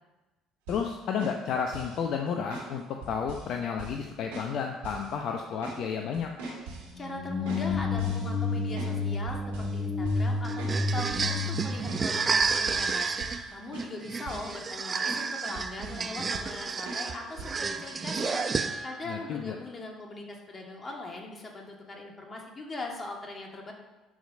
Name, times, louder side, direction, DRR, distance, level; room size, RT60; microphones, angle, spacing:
voice 1, 0.7-6.3 19.1-19.6, left 6 dB, 60° left, 3 dB, 0.7 m, -32 dB
sound 1, 0.7-0.9 1.2-2.0 2.5-2.7 3.0-3.5 3.8-4.1 4.3-4.5 4.8-5.1 5.4-5.8 6.1-6.9 7.5-9.0 9.3-9.8 10.0-10.3 10.6-10.8 11.1-11.4 11.9-12.1 12.4-12.9 13.2-13.5 13.7-14.8 15.1-15.2 15.6-16.1 16.3-16.6 16.9-17.1 17.4-17.6 18.2-18.3, right 3 dB, 80° right, 3.1 m, -42 dB
voice 2, 6.7-23.7, left 2 dB, 30° left, 0 dB, 2.4 m, -40 dB
sound 2, 6.8-12.9, left 3 dB, 10° left, 2.8 m, -31 dB
sound 3, 10.4-19.1, right 5 dB, 35° right, 0.8 m, -31 dB
11.5 x 4.9 x 5.3 m, 1.1 s
hypercardioid pair, 55°, 0 cm